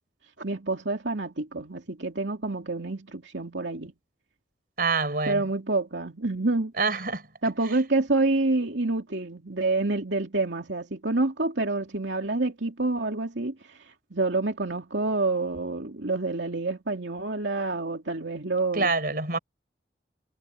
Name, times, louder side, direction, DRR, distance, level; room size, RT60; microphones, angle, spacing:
voice 1, 0.4-3.9 5.3-6.7 7.4-13.8 14.1-18.9, right 2 dB, 85° right, 2.7 m, -28 dB
voice 2, 4.8-5.4 6.8-7.2 18.7-19.4, right 4 dB, 55° right, 5.0 m, -26 dB
head